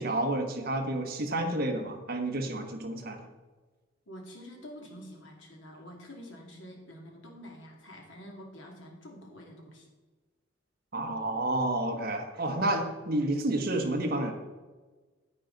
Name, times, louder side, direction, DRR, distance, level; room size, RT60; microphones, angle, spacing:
voice 1, 0.0-3.2 10.9-14.3, right 1 dB, 50° right, 5 dB, 1.2 m, -30 dB
voice 2, 4.1-9.9, equal, 65° left, 0 dB, 2.4 m, -47 dB
9.6 x 8.8 x 3.9 m, 1.3 s
head